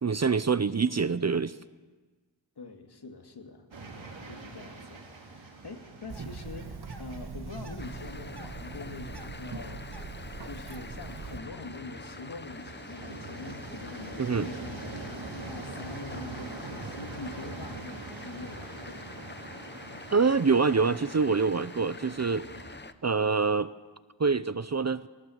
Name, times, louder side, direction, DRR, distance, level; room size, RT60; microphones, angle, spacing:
voice 1, 0.0-1.6 14.2-14.5 20.1-22.5 23.0-23.7 24.2-25.0, right 5 dB, 35° right, 15 dB, 0.6 m, -25 dB
voice 2, 2.6-3.7 4.2-9.9 10.4-19.1, left 3 dB, 60° left, 4 dB, 2.5 m, -44 dB
sound 1, 3.7-22.8, right 3 dB, 80° right, 3.5 m, -44 dB
Bird, 6.1-11.4, right 4 dB, 55° right, 2.1 m, -41 dB
sound 2, 7.8-22.9, left 3 dB, 25° left, 0.9 m, -46 dB
22.0 x 19.0 x 8.0 m, 1.3 s
wide cardioid pair, 95°, 45 cm